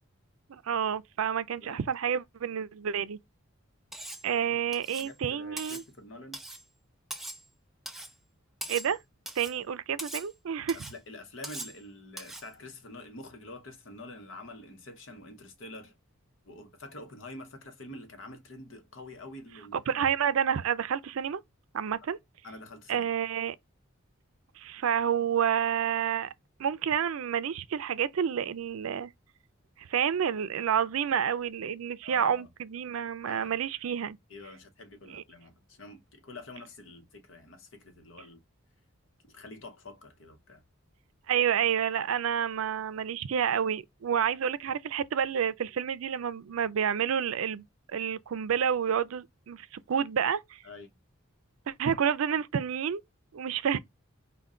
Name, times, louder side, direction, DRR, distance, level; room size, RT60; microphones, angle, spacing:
voice 1, 0.5-3.2 4.2-5.8 8.7-9.0 9.4-10.8 19.9-21.4 21.7-22.2 22.9-23.6 24.6-26.3 26.6-29.1 29.8-34.2 35.1-35.2 41.3-47.6 47.9-50.6 51.7-53.0 53.3-53.8, right 8 dB, 80° right, 0.4 m, -29 dB
voice 2, 1.6-1.9 4.3-4.4 5.0-6.4 10.7-15.9 16.4-19.8 22.4-23.1 32.0-32.5 33.3-33.5 34.3-38.4 39.3-40.6 44.1-44.2 50.6-50.9, left 2 dB, 65° left, 0.9 m, -47 dB
Cutlery silverware, 3.9-4.3 4.7-5.1 5.6-5.9 6.3-6.6 7.1-7.5 7.9-8.1 8.6-9.0 9.3-9.6 10.0-10.3 10.7-11.0 11.4-11.8 12.2-12.5, right 1 dB, ahead, 0.4 m, -41 dB
5.4 x 2.2 x 3.7 m
head